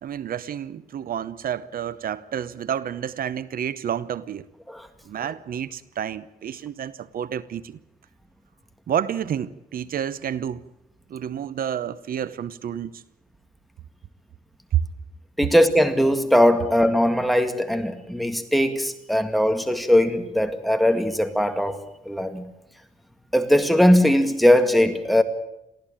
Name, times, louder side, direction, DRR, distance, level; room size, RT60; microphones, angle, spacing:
voice 1, 0.0-4.4 5.0-7.7 8.9-10.6 11.1-13.0 14.7-14.8, right 9 dB, 80° right, 0.9 m, -29 dB
voice 2, 15.4-21.8 22.1-22.4 23.3-25.2, equal, ahead, 2.0 m, -20 dB
23.0 x 15.5 x 8.8 m
wide cardioid pair, 120°, 15 cm